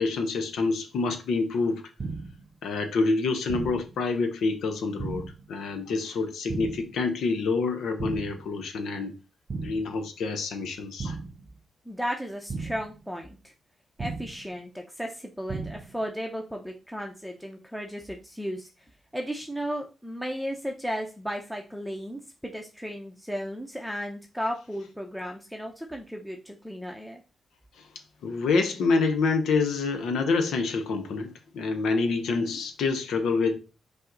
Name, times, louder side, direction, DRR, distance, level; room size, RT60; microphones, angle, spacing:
voice 1, 0.0-1.8 2.6-9.2 9.6-11.2 28.2-33.6, left 4 dB, 85° left, 0.7 m, -27 dB
sound 1, 2.0-2.5 3.5-4.0 5.0-5.5 6.5-7.0 8.0-8.5 9.5-10.0 11.0-11.5 12.5-13.0 14.0-14.5 15.5-16.0, right 4 dB, 45° right, 0.6 m, -35 dB
voice 2, 11.9-13.5 14.0-18.7 19.1-27.2, equal, ahead, 0.6 m, -35 dB
5.6 x 2.1 x 3.8 m
cardioid pair, 80°, 0 cm